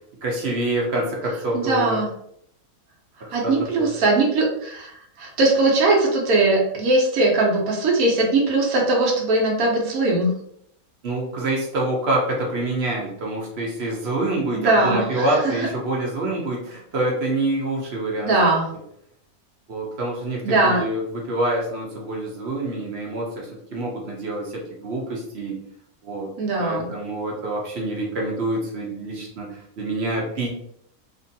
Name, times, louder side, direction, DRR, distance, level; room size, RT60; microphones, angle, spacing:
voice 1, 0.2-2.0 3.2-3.9 11.0-18.3 19.7-25.6 26.0-26.3 26.6-30.5, right 2 dB, 55° right, -2 dB, 0.8 m, -26 dB
voice 2, 1.5-2.1 3.3-10.3 14.5-15.7 18.2-18.7 20.4-20.8 26.4-26.9, right 2 dB, 80° right, -1 dB, 1.2 m, -20 dB
2.9 x 2.5 x 2.6 m, 0.71 s
omnidirectional pair, 1.5 m